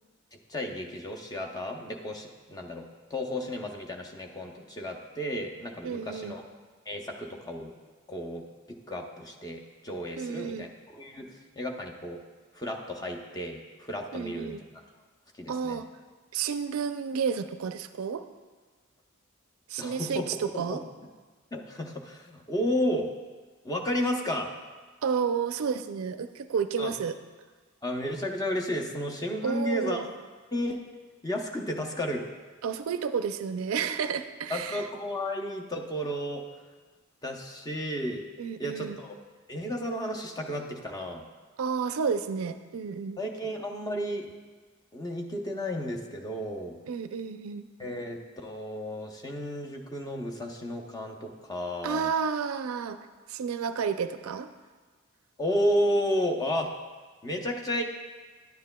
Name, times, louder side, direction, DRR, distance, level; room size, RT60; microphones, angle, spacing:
voice 1, 0.5-6.4 6.9-7.7 8.1-12.2 12.5-14.6 15.3-15.8 19.8-20.8 21.5-23.1 23.6-24.5 26.8-26.9 27.8-30.1 30.5-30.8 31.2-32.3 34.5-36.4 37.2-38.3 38.6-39.1 39.5-41.2 43.2-44.3 44.9-46.8 47.8-52.1 55.4-56.7 57.2-57.8, equal, 20° left, 2 dB, 0.7 m, -32 dB
voice 2, 5.8-6.4 10.2-10.7 14.1-14.6 15.5-15.9 16.3-18.2 19.7-20.8 25.0-27.1 29.4-30.1 32.6-34.8 38.4-39.0 41.6-43.2 46.9-47.7 51.8-53.0 53.3-54.5, right 6 dB, 85° right, 10 dB, 0.4 m, -31 dB
10.5 x 9.3 x 2.2 m, 1.4 s
head